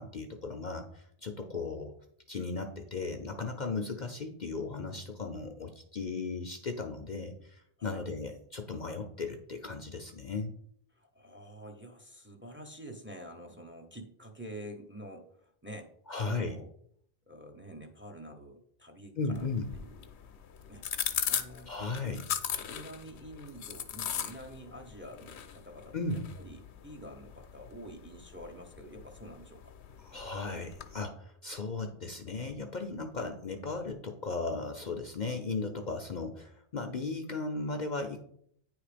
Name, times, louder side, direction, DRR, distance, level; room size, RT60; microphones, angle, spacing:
voice 1, 0.0-1.9 2.3-10.5 16.1-16.5 19.2-19.7 21.7-22.2 25.9-26.3 30.0-38.2, left 3 dB, 50° left, 5 dB, 0.7 m, -36 dB
voice 2, 10.9-16.7 17.3-19.5 19.7-20.1 20.7-20.9 21.2-22.2 22.7-29.7, right 1 dB, 10° right, 3 dB, 0.8 m, -48 dB
sound 1, 19.3-31.0, left 9 dB, 80° left, 0.9 m, -39 dB
9.3 x 3.2 x 5.0 m, 0.68 s
omnidirectional pair, 1.1 m